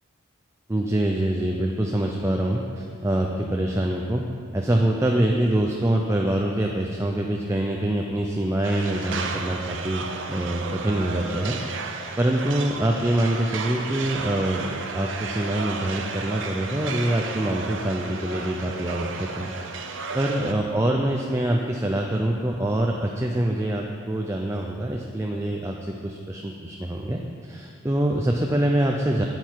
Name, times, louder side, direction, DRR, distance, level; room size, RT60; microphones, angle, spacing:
voice 1, 0.7-4.2 4.5-11.6 11.8-19.5 19.8-29.2, right 1 dB, 15° right, 0 dB, 0.4 m, -25 dB
sound 1, 8.6-20.5, right 4 dB, 65° right, 0.7 m, -33 dB
10.0 x 7.8 x 4.5 m, 2.3 s
head